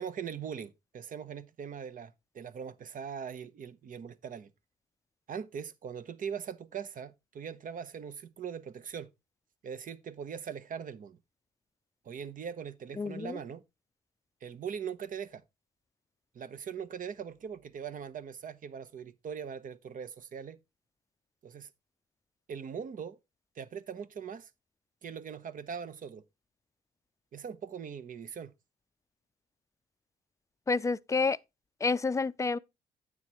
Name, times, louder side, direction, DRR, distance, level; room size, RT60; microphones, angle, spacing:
voice 1, 0.0-4.5 5.3-9.1 9.6-11.2 12.0-13.6 14.4-15.4 16.3-20.6 21.4-21.7 22.5-23.2 23.5-24.5 25.0-26.2 27.3-28.5, right 7 dB, 55° right, 0.9 m, -41 dB
voice 2, 13.0-13.4 30.7-31.4 31.8-32.6, left 4 dB, 20° left, 0.4 m, -29 dB
9.5 x 7.6 x 3.0 m
cardioid pair, 95°, 17 cm